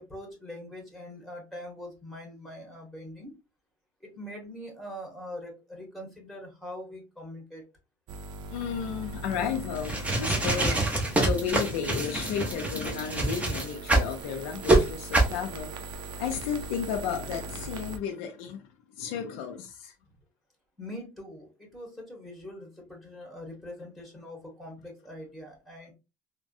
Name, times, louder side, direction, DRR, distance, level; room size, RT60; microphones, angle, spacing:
voice 1, 0.0-3.3 4.0-7.6 20.1-20.2 20.8-25.9, left 1 dB, ahead, 1.7 m, -43 dB
sound 1, 8.1-18.0, right 2 dB, 55° right, 0.5 m, -41 dB
voice 2, 8.5-15.9 16.2-18.6 19.0-19.9, left 7 dB, 85° left, 0.5 m, -33 dB
sound 2, 9.8-14.1 14.6-14.8 15.1-15.4, right 2 dB, 15° right, 1.0 m, -25 dB
3.3 x 2.2 x 2.6 m
supercardioid pair, 95°, 9 cm